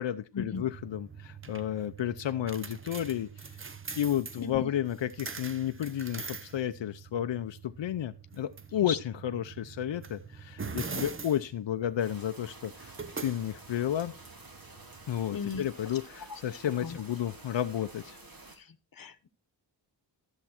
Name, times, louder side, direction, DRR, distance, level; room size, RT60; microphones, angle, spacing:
voice 1, 0.0-3.3 4.0-12.9 13.2-14.1 15.1-18.2, left 11 dB, 85° left, 9 dB, 0.7 m, -32 dB
sound 1, 0.5-15.3, right 5 dB, 30° right, 0.8 m, -44 dB
sound 2, 12.0-18.6, right 2 dB, 50° right, 2.8 m, -51 dB
voice 2, 15.3-15.6 16.8-17.0 18.6-18.7 19.0-19.3, left 6 dB, 50° left, 12 dB, 1.1 m, -36 dB
13.0 x 7.4 x 4.3 m, 0.30 s
wide cardioid pair, 130°, 43 cm